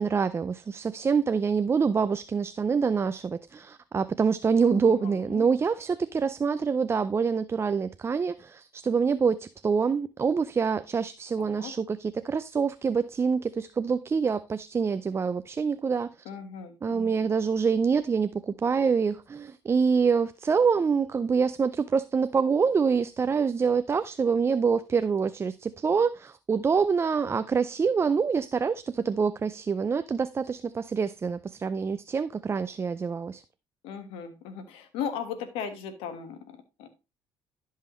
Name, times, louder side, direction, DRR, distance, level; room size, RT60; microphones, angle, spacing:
voice 1, 0.0-16.1 16.8-33.4, right 5 dB, 30° right, 0.4 m, -26 dB
voice 2, 4.6-5.4 11.4-11.7 16.2-17.3 33.8-36.9, left 7 dB, 90° left, 1.5 m, -38 dB
12.0 x 5.6 x 3.0 m
cardioid pair, 90°, 9 cm